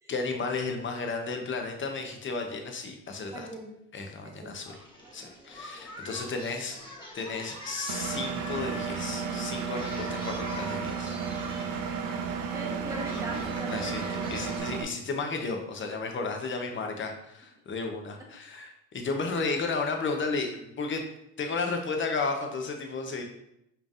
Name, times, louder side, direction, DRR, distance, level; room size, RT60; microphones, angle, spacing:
voice 1, 0.1-3.5 3.9-4.7 5.1-6.8 7.1-11.8 13.6-21.0 21.4-23.2, left 4 dB, 30° left, 4 dB, 0.8 m, -33 dB
voice 2, 3.3-3.7 4.2-4.5 6.4-6.5 12.2-14.3, right 1 dB, 5° right, -2 dB, 0.9 m, -41 dB
Singing, 4.7-14.6, left 1 dB, 10° left, 1.2 m, -44 dB
Engine, 7.9-14.8, right 6 dB, 50° right, 0.6 m, -33 dB
5.0 x 3.3 x 2.5 m, 0.81 s
hypercardioid pair, 75°, 43 cm